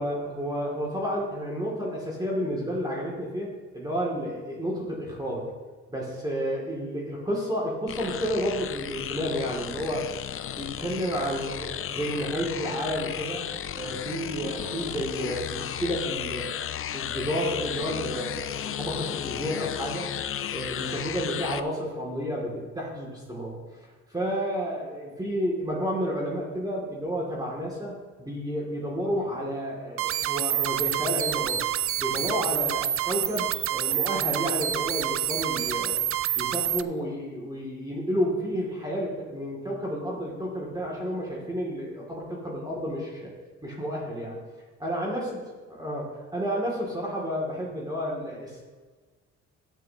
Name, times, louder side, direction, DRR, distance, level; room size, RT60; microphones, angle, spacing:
voice 1, 0.0-3.5 3.7-5.5 5.9-10.1 10.5-13.4 13.7-16.6 16.9-20.1 20.5-23.6 24.1-27.9 28.2-31.6 32.0-36.0 36.4-43.3 43.6-44.4 44.8-45.3 45.7-48.6, equal, 15° right, -4 dB, 2.6 m, -31 dB
sound 1, 7.9-21.6, left 10 dB, 45° left, 0.5 m, -34 dB
sound 2, 30.0-36.8, right 12 dB, 45° right, 0.4 m, -27 dB
13.5 x 9.3 x 2.9 m, 1.4 s
cardioid pair, 90°, 30 cm